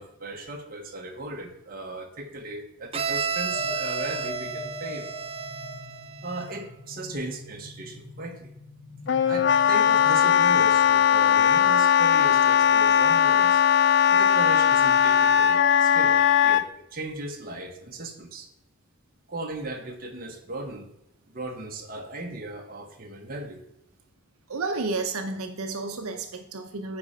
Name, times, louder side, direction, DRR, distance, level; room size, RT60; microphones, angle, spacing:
voice 1, 0.0-5.1 6.2-8.5 9.2-13.6 14.1-18.5 19.3-20.9 21.3-23.6, right 2 dB, 40° right, 2 dB, 1.1 m, -37 dB
Bowed string instrument, 2.9-6.7, right 6 dB, 25° right, 0.5 m, -32 dB
sound 1, 3.5-10.1, left 1 dB, 15° left, 1.8 m, -41 dB
Wind instrument woodwind instrument, 9.1-16.6, left 8 dB, 50° left, 0.4 m, -19 dB
voice 2, 24.5-27.0, right 3 dB, 80° right, 6 dB, 0.8 m, -31 dB
9.5 x 4.3 x 5.0 m, 0.81 s
head